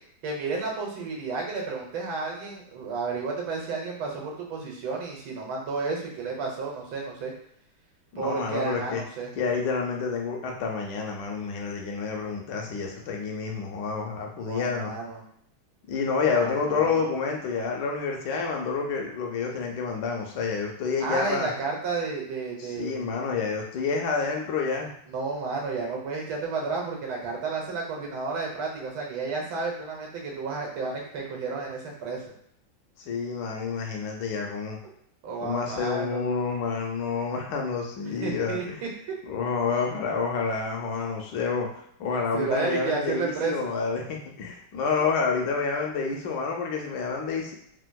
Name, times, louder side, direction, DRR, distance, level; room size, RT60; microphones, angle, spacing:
voice 1, 0.2-7.3 8.2-9.3 14.4-15.2 16.3-16.9 21.0-23.0 25.1-32.2 35.2-36.2 38.2-38.9 42.3-43.7, right 4 dB, 75° right, -1 dB, 1.5 m, -32 dB
voice 2, 8.1-9.0 9.4-14.9 15.9-21.5 22.6-24.9 33.0-34.8 35.4-38.8 39.3-41.7 42.0-47.5, left 5 dB, 75° left, 0 dB, 1.1 m, -29 dB
3.5 x 2.5 x 2.2 m, 0.71 s
omnidirectional pair, 2.2 m